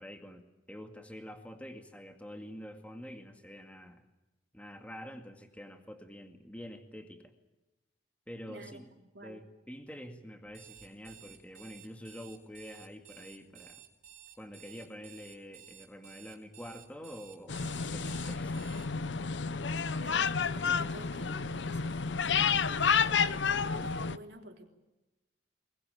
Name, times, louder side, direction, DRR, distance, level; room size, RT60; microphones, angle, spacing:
voice 1, 0.0-4.1 4.5-7.3 8.3-8.9 9.2-13.8 14.4-18.7, equal, 10° left, 5 dB, 2.1 m, -47 dB
voice 2, 8.5-9.5 20.0-24.7, right 1 dB, 70° right, 3 dB, 3.3 m, -50 dB
Alarm, 10.5-18.9, right 10 dB, 45° right, 3.5 m, -54 dB
sound 1, 17.5-24.2, left 6 dB, 85° left, 0.7 m, -30 dB
23.0 x 20.0 x 9.0 m, 1.0 s
head